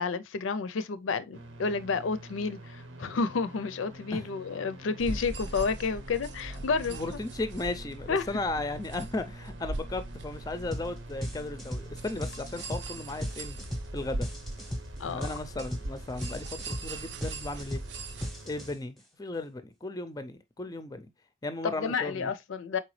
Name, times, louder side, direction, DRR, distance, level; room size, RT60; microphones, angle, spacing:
voice 1, 0.0-7.0 8.1-8.3 15.0-15.4 21.6-22.8, left 4 dB, 85° left, 0.4 m, -30 dB
sound 1, 1.3-18.7, right 1 dB, 80° right, 0.9 m, -48 dB
sound 2, 5.0-18.3, right 2 dB, 60° right, 0.6 m, -41 dB
voice 2, 6.9-13.6 13.9-14.3 15.0-17.8 18.5-21.1 21.4-22.3, left 2 dB, 20° left, 0.4 m, -36 dB
sound 3, 10.7-10.9 11.2-19.0, equal, ahead, 0.8 m, -37 dB
4.4 x 3.9 x 3.1 m
head